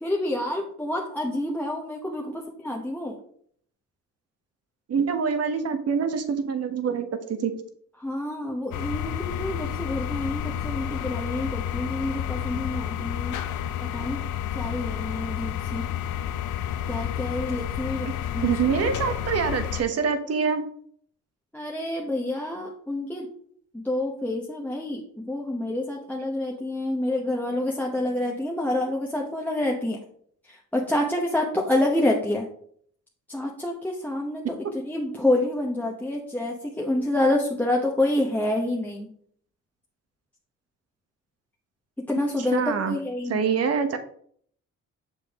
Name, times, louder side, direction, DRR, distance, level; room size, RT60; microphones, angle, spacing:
voice 1, 0.0-3.2 8.0-13.4 13.8-14.2 14.5-15.8 16.9-18.6 21.5-23.3 23.7-30.0 30.4-32.5 33.3-39.1 42.1-43.4, left 1 dB, 5° left, -2 dB, 1.0 m, -28 dB
voice 2, 4.9-7.1 7.4-7.5 18.4-20.6 42.5-42.9 43.3-44.0, right 6 dB, 55° right, 8 dB, 1.0 m, -25 dB
sound 1, 8.7-19.8, left 10 dB, 90° left, 0.6 m, -30 dB
6.8 x 5.3 x 3.6 m, 0.62 s
cardioid pair, 90°, 30 cm